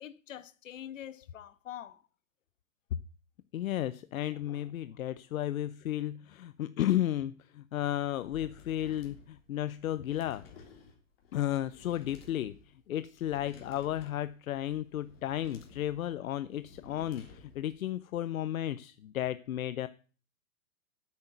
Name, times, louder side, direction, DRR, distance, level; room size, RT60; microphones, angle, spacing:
voice 1, 0.0-2.0 4.5-4.6, left 11 dB, 65° left, 1.4 m, -45 dB
voice 2, 3.5-10.4 11.3-12.6 12.9-19.9, left 12 dB, 85° left, 0.8 m, -33 dB
sound 1, 8.2-17.8, left 4 dB, 45° left, 3.7 m, -55 dB
9.7 x 8.8 x 9.2 m
hypercardioid pair, 175°, 40 cm